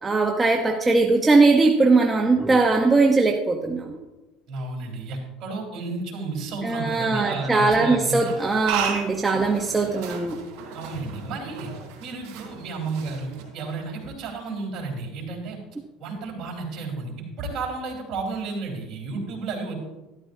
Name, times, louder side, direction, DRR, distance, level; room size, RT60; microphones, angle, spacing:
voice 1, 0.0-4.0 6.6-10.4, right 3 dB, 15° right, 1 dB, 0.8 m, -20 dB
voice 2, 4.5-8.4 10.7-11.7 12.0-15.6 16.0-19.8, right 3 dB, 45° right, -1 dB, 3.8 m, -32 dB
sound 1, 8.3-13.9, right 7 dB, 75° right, 3.5 m, -35 dB
12.5 x 12.5 x 2.7 m, 1.1 s
supercardioid pair, 120°, 0 cm